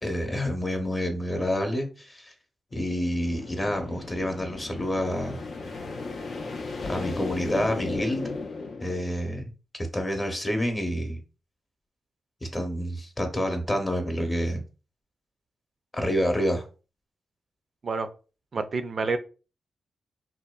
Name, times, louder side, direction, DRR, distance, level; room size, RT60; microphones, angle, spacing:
voice 1, 0.0-2.3 2.7-5.4 6.8-8.3 8.8-9.5 9.8-11.2 12.5-14.6 15.9-16.6, equal, 25° left, 0.8 m, -28 dB
sound 1, 2.7-9.4, left 3 dB, 65° left, 0.4 m, -36 dB
voice 2, 18.5-19.2, right 4 dB, 55° right, 0.4 m, -28 dB
2.6 x 2.2 x 2.2 m
supercardioid pair, 45°, 0 cm